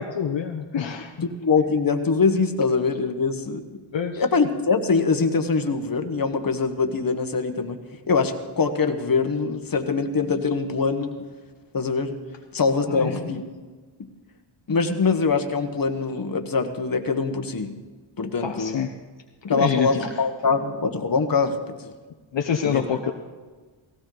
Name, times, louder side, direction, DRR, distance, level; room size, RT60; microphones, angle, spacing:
voice 1, 0.0-1.1 3.9-4.2 12.9-13.3 18.4-18.9 19.5-20.1 22.3-23.1, left 7 dB, 60° left, 3 dB, 1.0 m, -26 dB
voice 2, 1.2-3.6 4.2-7.8 8.1-11.1 11.7-12.1 12.5-13.4 14.7-17.7 18.2-18.8 19.4-21.9 22.6-22.8, left 4 dB, 45° left, 6 dB, 1.3 m, -23 dB
17.5 x 16.5 x 3.9 m, 1.3 s
wide cardioid pair, 80°, 49 cm